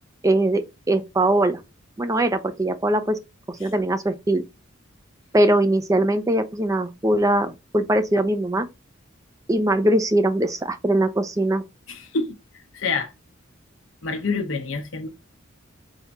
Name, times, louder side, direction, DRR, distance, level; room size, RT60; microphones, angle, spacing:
voice 1, 0.2-1.6 2.0-3.2 3.5-4.4 5.3-8.7 9.5-11.6, right 1 dB, 15° right, 0.4 m, -21 dB
voice 2, 11.9-12.4 12.7-13.1 14.0-15.1, left 4 dB, 70° left, 0.8 m, -27 dB
3.6 x 3.4 x 4.0 m
head